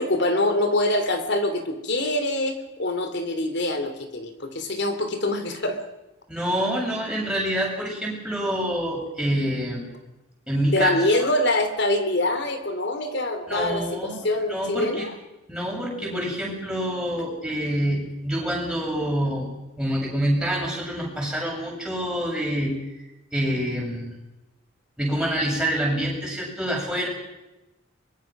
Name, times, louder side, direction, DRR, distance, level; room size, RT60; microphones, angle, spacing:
voice 1, 0.0-5.8 10.7-15.1, left 1 dB, 55° left, 8 dB, 3.1 m, -24 dB
voice 2, 6.3-9.9 10.5-11.2 13.5-15.1 15.5-19.5 19.8-22.7 23.3-24.1 25.0-27.1, equal, 5° right, -3 dB, 7.5 m, -26 dB
24.0 x 22.5 x 6.1 m, 0.99 s
head